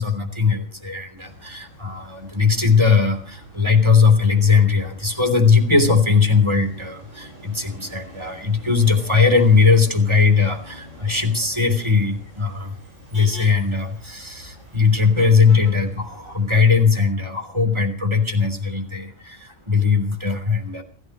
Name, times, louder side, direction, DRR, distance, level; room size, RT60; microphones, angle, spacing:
voice 1, 0.0-12.8 13.1-20.8, left 5 dB, 20° right, 6 dB, 3.5 m, -19 dB
Motor vehicle (road), 1.2-16.8, equal, 80° right, 8.5 m, -44 dB
29.5 x 14.0 x 3.1 m, 0.43 s
omnidirectional pair, 1.3 m